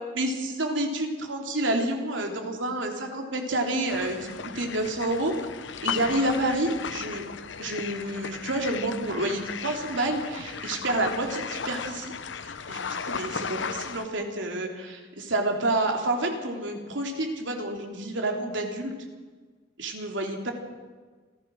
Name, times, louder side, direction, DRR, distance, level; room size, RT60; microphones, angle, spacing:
voice 1, 0.1-5.3 5.8-7.3 7.6-12.1 12.4-18.9 19.8-20.5, right 1 dB, 85° right, 2 dB, 3.3 m, -29 dB
sound 1, 3.9-14.1, left 6 dB, 80° left, 0.9 m, -35 dB
27.5 x 15.0 x 6.4 m, 1.4 s
head